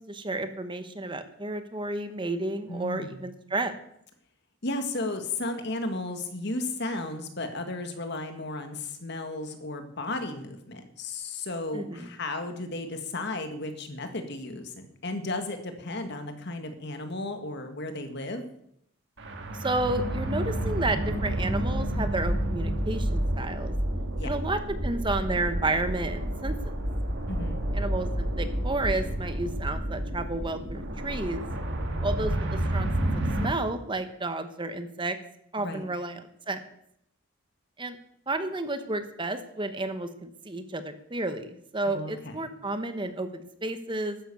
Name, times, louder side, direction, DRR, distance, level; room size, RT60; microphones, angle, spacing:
voice 1, 0.0-3.7 11.7-12.1 19.6-23.7 24.2-26.6 27.7-31.5 32.0-32.9 33.1-35.2 35.5-36.6 37.8-38.0 38.3-44.2, right 2 dB, 25° right, 9 dB, 1.1 m, -31 dB
voice 2, 2.7-3.2 4.6-18.4 24.2-24.3 27.3-27.6 33.0-33.4 35.6-35.8 41.9-42.5, left 2 dB, 55° left, 7 dB, 1.9 m, -34 dB
sound 1, 19.2-33.5, right 1 dB, 60° right, 2.0 m, -30 dB
12.5 x 10.0 x 6.9 m, 0.73 s
head